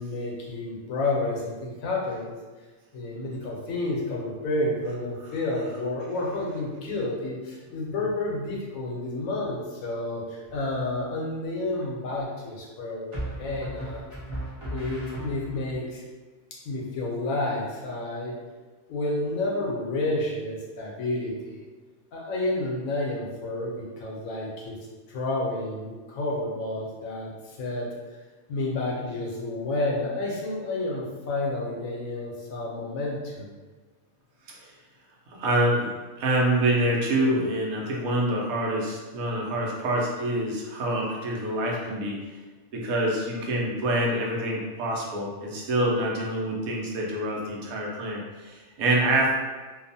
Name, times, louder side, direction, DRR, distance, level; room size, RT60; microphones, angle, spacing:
voice 1, 0.0-2.3 2.9-14.0 14.7-16.0 16.5-18.4 18.9-21.6 22.1-24.8 25.1-27.9 28.5-33.5, left 2 dB, 75° left, -3 dB, 1.0 m, -30 dB
sound 1, 10.5-11.0 13.1-15.8, right 1 dB, 45° right, 0.4 m, -37 dB
voice 2, 35.3-35.9 36.2-42.2 42.7-49.3, right 1 dB, 85° right, -2 dB, 1.1 m, -26 dB
2.9 x 2.0 x 2.6 m, 1.3 s
omnidirectional pair, 1.5 m